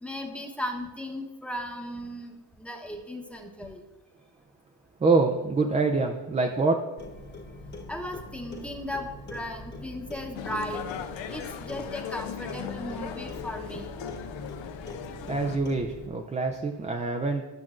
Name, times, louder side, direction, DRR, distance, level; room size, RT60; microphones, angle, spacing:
voice 1, 0.0-3.8 7.9-13.9, left 1 dB, ahead, 2 dB, 0.9 m, -36 dB
voice 2, 5.0-6.8 15.3-17.5, right 3 dB, 15° right, 3 dB, 0.4 m, -25 dB
Clock, 7.0-16.1, left 2 dB, 20° left, 1.2 m, -43 dB
sound 1, 10.3-15.6, left 9 dB, 65° left, 0.6 m, -38 dB
12.0 x 5.9 x 2.5 m, 1.2 s
cardioid pair, 90°, 48 cm